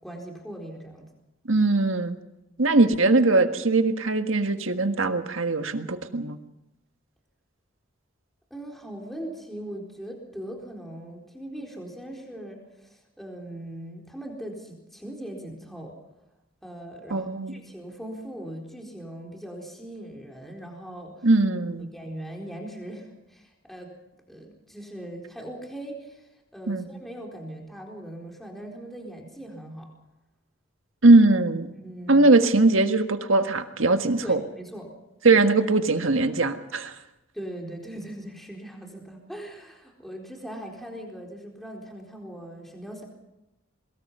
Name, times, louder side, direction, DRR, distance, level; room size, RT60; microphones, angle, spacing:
voice 1, 0.0-1.1 8.5-15.9 16.6-21.3 21.8-23.9 24.3-29.9 31.7-32.3 34.2-34.9 35.3-35.4 37.3-43.1, right 1 dB, ahead, 0 dB, 4.2 m, -40 dB
voice 2, 1.5-2.1 2.6-6.4 17.1-17.6 21.2-21.9 26.7-26.8 31.0-31.7 32.1-34.4 35.2-36.9, right 2 dB, 75° right, 7 dB, 1.6 m, -20 dB
23.0 x 21.5 x 5.6 m, 0.93 s
head